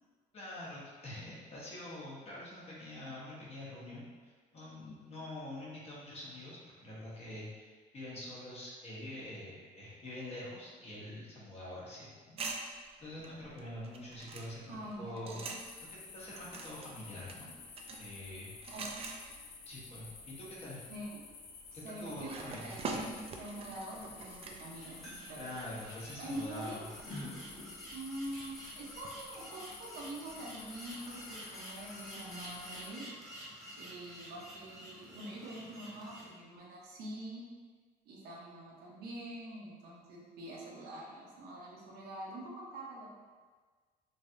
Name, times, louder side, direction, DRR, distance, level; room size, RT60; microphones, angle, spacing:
voice 1, 0.3-12.4 13.0-15.4 16.1-17.5 18.0-18.8 19.7-20.8 21.7-22.7 25.4-26.9, left 1 dB, 40° left, -6 dB, 0.9 m, -45 dB
sound 1, 12.4-15.9 16.2-19.9 20.2-20.4 21.0-25.4 25.8-29.2, right 3 dB, 35° right, 0.4 m, -45 dB
voice 2, 14.7-15.5 18.7-18.9 20.9-21.4 21.7-25.8 26.2-27.0 27.9-33.0 33.7-37.4 38.1-43.1, right 1 dB, 70° right, -4 dB, 0.8 m, -45 dB
sound 2, 15.6-32.9, left 4 dB, 65° left, 0.5 m, -52 dB
sound 3, 24.7-36.3, equal, ahead, 0.9 m, -49 dB
3.3 x 2.3 x 2.7 m, 1.5 s
cardioid pair, 110°, 17 cm